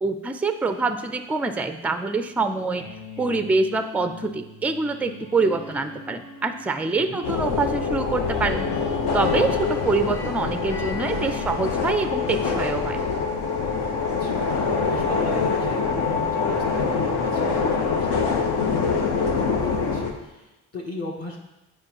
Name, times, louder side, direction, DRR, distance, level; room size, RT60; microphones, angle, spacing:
voice 1, 0.0-2.9 3.2-8.7 9.1-13.0, right 3 dB, 5° right, 9 dB, 0.4 m, -25 dB
sound 1, 0.7-13.2 13.7-16.6, left 2 dB, 85° left, 1.2 m, -42 dB
sound 2, 7.2-20.1, left 5 dB, 60° left, 1.0 m, -24 dB
voice 2, 14.0-21.4, left 2 dB, 30° left, -2 dB, 1.2 m, -37 dB
8.6 x 4.4 x 3.0 m, 0.99 s
hypercardioid pair, 50°, 45 cm